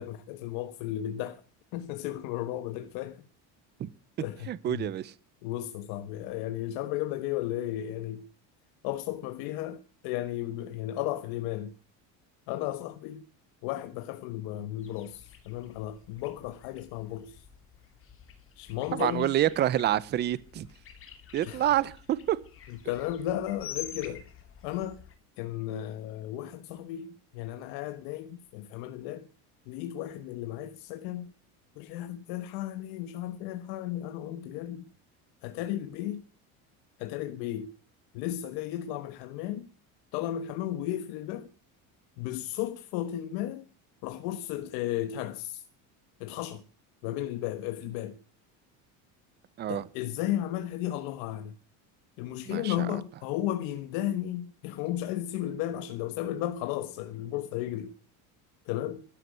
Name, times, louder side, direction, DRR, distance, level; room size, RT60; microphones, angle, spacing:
voice 1, 0.0-1.4 1.7-3.2 4.2-4.9 5.4-8.2 8.8-11.7 12.5-13.2 13.6-17.4 18.6-19.3 21.4-21.6 22.7-24.3 24.6-25.0 25.4-29.3 29.7-31.3 31.8-34.8 35.4-36.2 37.0-37.7 38.1-39.7 40.1-41.5 42.2-43.6 44.0-45.6 46.2-46.6 47.0-48.2 49.7-51.5 52.2-57.9 58.7-59.0, left 13 dB, 75° left, 1.3 m, -34 dB
voice 2, 4.5-5.1 18.9-20.7 21.3-22.4 49.6-49.9 52.5-52.9, right 12 dB, 25° right, 0.6 m, -27 dB
sound 1, 14.8-25.2, left 8 dB, 35° left, 2.5 m, -48 dB
12.5 x 11.5 x 8.0 m
cardioid pair, 165°, 38 cm